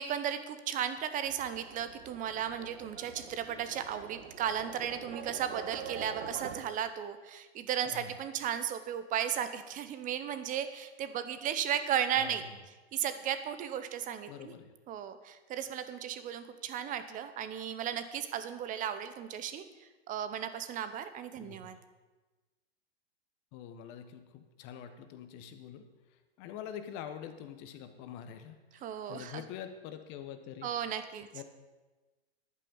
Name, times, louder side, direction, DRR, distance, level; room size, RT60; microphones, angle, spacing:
voice 1, 0.0-12.5 12.9-14.5 14.9-19.6 20.1-21.8 28.8-29.4 30.6-31.3, right 9 dB, 25° right, 11 dB, 0.9 m, -35 dB
Livestock farm animals working animals, 1.2-6.6, right 6 dB, 65° right, 2.1 m, -45 dB
voice 2, 12.2-12.6 14.3-14.7 21.4-21.8 23.5-25.9 26.4-30.7 31.3-31.4, left 9 dB, 35° left, 8 dB, 1.3 m, -45 dB
11.0 x 9.0 x 7.2 m, 1.2 s
hypercardioid pair, 125°, 33 cm